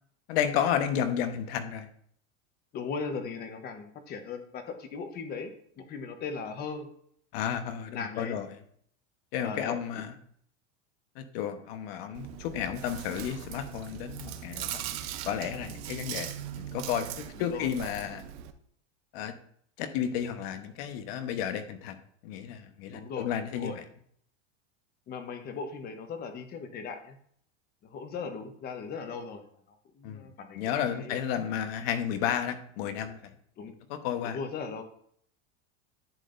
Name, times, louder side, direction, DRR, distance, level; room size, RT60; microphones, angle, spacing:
voice 1, 0.3-1.9 7.3-8.5 9.3-10.2 11.1-18.2 19.1-19.3 19.8-22.0 22.2-23.8 30.0-30.3 30.5-33.3 33.9-34.4, left 9 dB, 55° left, 8 dB, 1.2 m, -32 dB
voice 2, 2.7-6.9 7.9-8.4 9.4-10.0 17.4-17.7 22.9-23.8 25.1-27.2 27.8-31.2 33.6-33.7 34.2-34.8, left 5 dB, 25° left, 7 dB, 1.0 m, -38 dB
Chewing mastication, 12.1-18.5, right 11 dB, 55° right, 0.8 m, -40 dB
10.5 x 7.6 x 2.6 m, 0.64 s
supercardioid pair, 155°, 36 cm